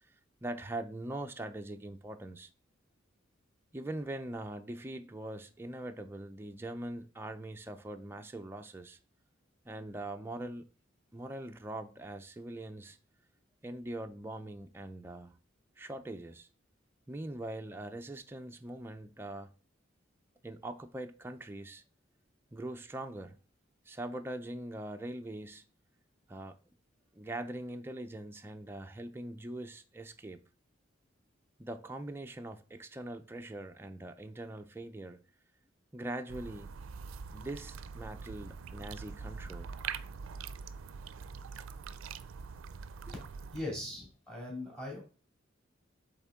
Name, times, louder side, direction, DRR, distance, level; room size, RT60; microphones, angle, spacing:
voice 1, 0.4-2.5 3.7-9.0 9.7-10.7 11.1-13.0 13.6-15.4 15.8-16.5 17.1-19.5 20.4-21.8 22.5-23.4 23.9-25.6 26.3-26.6 27.1-30.4 31.6-35.2 35.9-36.7 37.3-39.7, right 1 dB, 10° right, 0.4 m, -42 dB
sound 1, 36.3-43.6, right 6 dB, 90° right, 0.4 m, -43 dB
voice 2, 43.5-45.0, left 1 dB, 5° left, 2.4 m, -40 dB
8.0 x 3.6 x 3.6 m
head